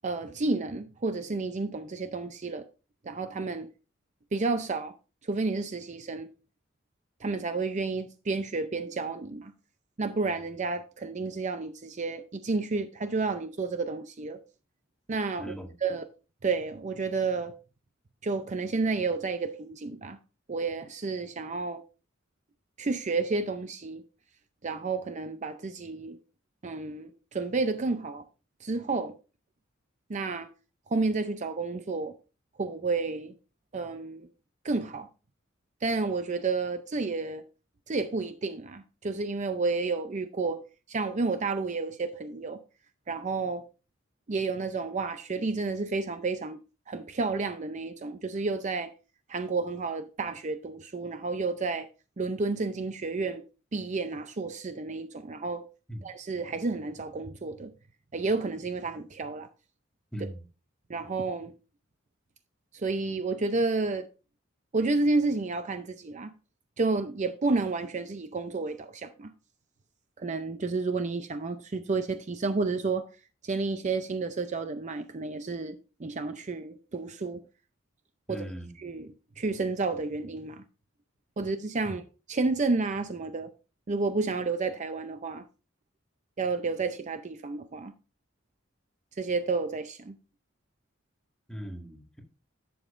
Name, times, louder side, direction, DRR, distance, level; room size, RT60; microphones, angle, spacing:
voice 1, 0.0-2.7 3.0-3.7 4.3-4.9 5.2-6.3 7.2-9.5 10.0-14.4 15.1-15.5 15.8-16.0 16.4-17.5 18.2-20.2 20.5-21.8 22.8-24.0 24.6-26.2 26.6-28.2 28.6-29.1 30.1-30.5 30.9-32.1 32.6-33.3 33.7-34.3 34.6-35.1 35.8-37.4 37.9-40.6 40.9-42.6 43.1-43.7 44.3-46.6 46.9-48.9 49.3-51.9 52.2-53.4 53.7-55.7 56.0-57.7 58.1-59.5 60.9-61.5 62.7-64.1 64.7-66.3 66.8-69.3 70.2-73.0 73.4-77.4 78.3-78.4 78.8-79.1 79.4-80.6 81.4-82.0 82.3-83.5 83.9-85.4 86.4-87.9 89.2-90.1, right 3 dB, 35° right, 0.5 m, -31 dB
voice 2, 15.4-15.8 55.9-56.0 60.1-60.5 78.3-79.0 81.8-81.9 91.5-92.2, equal, 5° left, 1.8 m, -39 dB
11.0 x 7.1 x 2.5 m
head